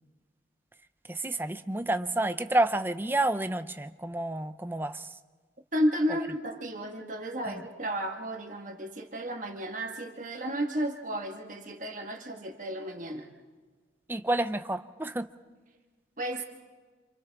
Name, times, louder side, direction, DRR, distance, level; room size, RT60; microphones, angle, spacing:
voice 1, 1.1-5.1 7.4-7.6 14.1-15.3, right 1 dB, 10° right, 11 dB, 0.5 m, -29 dB
voice 2, 5.7-13.3 16.2-16.4, equal, 45° right, 3 dB, 1.5 m, -32 dB
29.0 x 27.0 x 3.5 m, 1.4 s
head